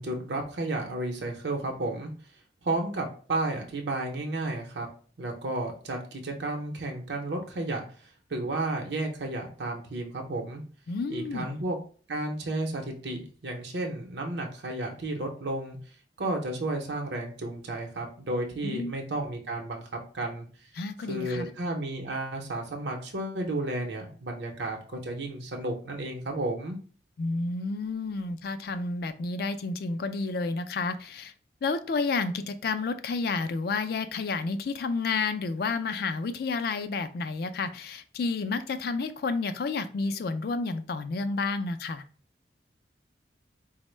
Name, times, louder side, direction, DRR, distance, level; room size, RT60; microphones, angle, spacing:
voice 1, 0.0-2.1 2.6-4.9 5.2-10.6 11.1-11.8 12.1-15.8 16.2-20.5 21.1-26.8, right 2 dB, 75° right, 1 dB, 0.7 m, -32 dB
voice 2, 10.9-11.6 18.6-18.9 20.8-21.5 27.2-31.3 31.6-42.0, left 4 dB, 55° left, 10 dB, 0.3 m, -30 dB
4.3 x 2.1 x 3.1 m, 0.41 s
head